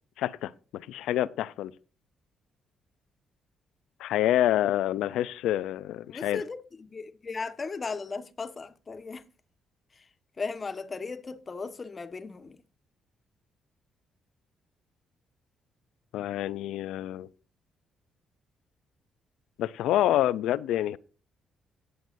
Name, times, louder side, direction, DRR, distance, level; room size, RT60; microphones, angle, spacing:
voice 1, 0.2-1.7 4.0-6.4 16.1-17.3 19.6-21.0, left 13 dB, 85° left, 0.5 m, -27 dB
voice 2, 6.1-9.2 9.9-10.1 10.4-12.6, left 4 dB, 35° left, 1.4 m, -37 dB
17.0 x 7.9 x 2.6 m
cardioid pair, 90°, 0 cm